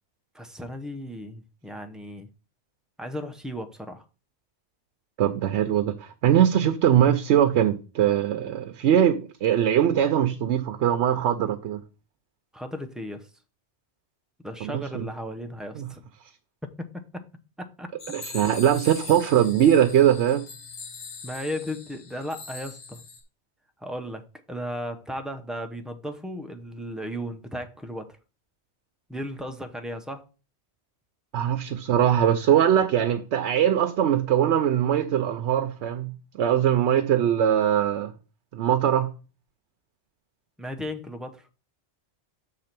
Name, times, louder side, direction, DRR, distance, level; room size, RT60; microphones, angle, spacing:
voice 1, 0.3-2.3 3.0-4.0 12.5-13.3 14.4-16.0 16.6-16.9 17.1-17.2 17.6-17.9 21.2-23.0 23.8-28.1 29.1-30.2 40.6-41.5, equal, ahead, 0.5 m, -35 dB
voice 2, 5.2-11.8 14.6-15.1 15.7-15.9 18.1-20.4 31.3-38.1 38.5-39.1, right 10 dB, 75° right, 0.9 m, -21 dB
sound 1, 18.0-23.2, left 4 dB, 70° left, 1.6 m, -41 dB
6.5 x 4.1 x 5.9 m
omnidirectional pair, 1.2 m